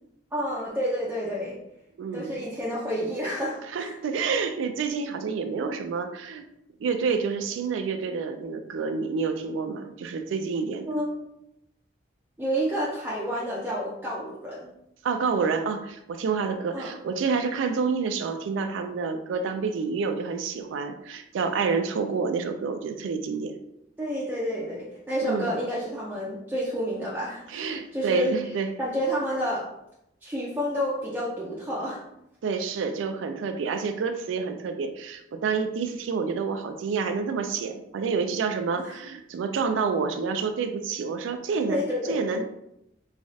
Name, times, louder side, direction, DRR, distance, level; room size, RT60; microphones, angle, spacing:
voice 1, 0.3-1.6 2.1-3.9 10.9-11.3 12.4-14.7 16.7-16.9 24.0-28.3 28.8-29.6 30.2-32.0 38.7-38.9 41.7-42.2, equal, 10° right, -7 dB, 0.4 m, -29 dB
voice 2, 2.0-2.4 3.7-6.4 6.8-10.9 15.0-23.6 25.2-25.5 27.5-28.7 32.4-41.8 42.1-42.4, right 5 dB, 85° right, 7 dB, 0.3 m, -28 dB
3.1 x 2.3 x 2.6 m, 0.81 s
head